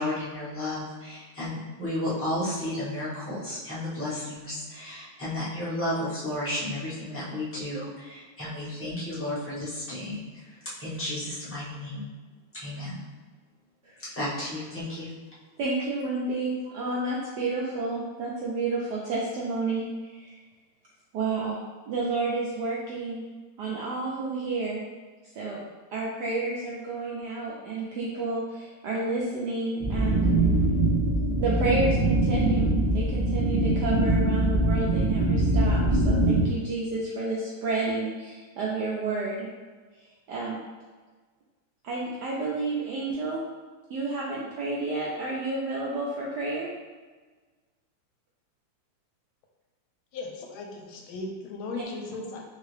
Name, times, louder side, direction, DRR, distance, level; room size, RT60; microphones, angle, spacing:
voice 1, 0.0-12.1 12.5-13.0 14.0-15.1, left 1 dB, 15° left, -10 dB, 0.5 m, -33 dB
voice 2, 15.6-20.4 21.1-21.6 21.9-23.2 23.6-24.8 25.3-25.6 25.9-30.3 31.4-39.5 40.0-40.6 41.8-43.4 43.9-46.7, right 3 dB, 75° right, -4 dB, 0.9 m, -30 dB
sound 1, 29.8-36.4, right 2 dB, 35° right, 0.5 m, -23 dB
voice 3, 50.1-52.4, left 3 dB, 80° left, 1 dB, 1.4 m, -37 dB
3.6 x 3.2 x 3.2 m, 1.4 s
omnidirectional pair, 2.4 m